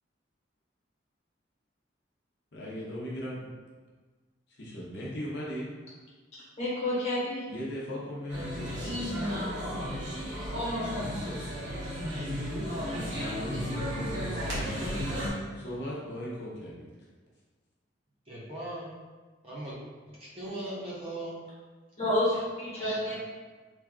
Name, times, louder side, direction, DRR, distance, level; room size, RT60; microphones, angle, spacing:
voice 1, 2.5-3.5 4.6-5.7 7.5-9.1 12.9-15.1 15.5-16.9, equal, 60° left, -6 dB, 0.8 m, -38 dB
voice 2, 6.6-7.4 22.0-23.2, left 1 dB, 35° left, -7 dB, 1.2 m, -29 dB
sound 1, 8.3-15.3, equal, 70° right, 1.1 m, -33 dB
voice 3, 18.3-18.9 19.4-19.8 20.1-21.5, right 1 dB, 30° right, -8 dB, 0.9 m, -39 dB
3.2 x 2.4 x 3.6 m, 1.4 s
head